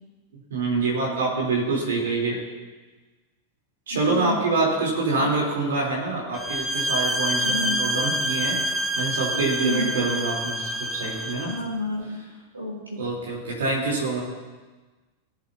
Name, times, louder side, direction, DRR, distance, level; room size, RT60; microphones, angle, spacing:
voice 1, 0.5-2.4 3.9-8.6 9.0-11.5 13.0-14.2, right 3 dB, 65° right, -3 dB, 3.8 m, -26 dB
voice 2, 3.9-4.5 5.1-5.4 7.4-7.8 9.6-9.9 11.4-12.2 12.5-13.0, left 2 dB, 80° right, -3 dB, 3.3 m, -30 dB
sound 1, 6.3-11.6, equal, 5° right, 0.9 m, -27 dB
18.5 x 8.1 x 2.9 m, 1.3 s
figure-of-eight pair, 90°, 0 cm